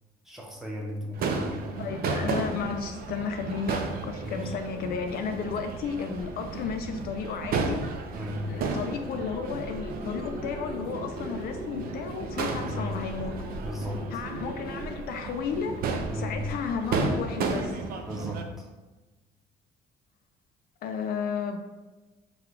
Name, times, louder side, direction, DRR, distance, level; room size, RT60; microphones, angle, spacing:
voice 1, 0.2-1.8 4.2-4.5 8.1-8.6 12.5-12.9 13.6-14.2 16.1-16.4 18.1-18.7, left 1 dB, ahead, -2 dB, 0.8 m, -36 dB
Crowd / Fireworks, 1.1-18.4, right 4 dB, 60° right, 0.5 m, -33 dB
voice 2, 1.8-7.8 8.5-13.3 14.1-15.8 16.1-17.8 20.8-21.6, left 6 dB, 65° left, 6 dB, 0.4 m, -33 dB
sound 1, 3.0-13.8, equal, 85° left, 0.9 m, -48 dB
sound 2, 7.9-15.0, equal, 30° right, 1.2 m, -42 dB
3.9 x 2.3 x 4.5 m, 1.1 s
cardioid pair, 110°, 17 cm